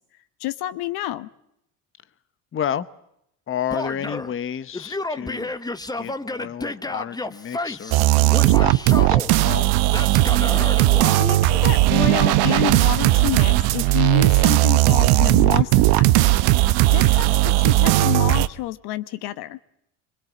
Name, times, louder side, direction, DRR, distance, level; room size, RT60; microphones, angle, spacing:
voice 1, 0.4-1.3 11.1-16.3 16.9-19.6, left 14 dB, 70° left, 14 dB, 1.1 m, -29 dB
voice 2, 2.5-2.9 3.5-5.5 5.9-9.6, left 9 dB, 30° left, 15 dB, 0.9 m, -31 dB
Male speech man speaking / Yell, 3.7-4.3 4.7-8.0 8.3-9.3 9.9-11.2, left 2 dB, 10° left, 1.1 m, -30 dB
sound 1, 7.9-18.5, right 17 dB, 75° right, 0.9 m, -17 dB
23.0 x 21.0 x 8.7 m, 0.79 s
supercardioid pair, 85°, 40 cm